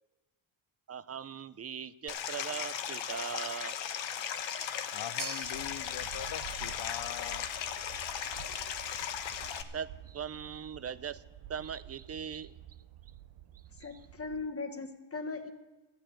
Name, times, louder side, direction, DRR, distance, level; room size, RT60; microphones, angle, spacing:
voice 1, 0.9-3.8 8.5-8.6 9.2-9.3 9.7-11.2 11.5-12.6 13.8-14.0, right 7 dB, 35° right, 16 dB, 0.5 m, -40 dB
Stream, 2.1-9.6, left 9 dB, 70° left, 1.1 m, -37 dB
voice 2, 4.9-7.5 7.8-7.9, left 11 dB, 55° left, 16 dB, 0.6 m, -42 dB
sound 1, 5.2-13.6, right 7 dB, 55° right, 1.5 m, -52 dB
sound 2, 5.4-14.5, right 12 dB, 75° right, 0.7 m, -50 dB
voice 3, 13.8-15.5, left 4 dB, 30° left, 7 dB, 1.4 m, -38 dB
13.5 x 9.0 x 8.4 m, 1.2 s
cardioid pair, 95°, 46 cm